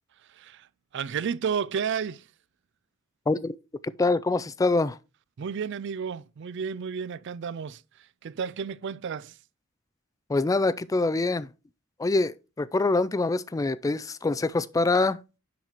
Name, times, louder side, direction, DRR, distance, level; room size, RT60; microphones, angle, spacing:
voice 1, 0.3-0.7 0.9-2.3 5.4-9.4, right 6 dB, 60° right, 0.4 m, -32 dB
voice 2, 3.3-3.6 4.0-5.0 10.3-11.5 12.0-15.2, left 3 dB, 15° left, 0.3 m, -25 dB
10.5 x 4.0 x 4.4 m
head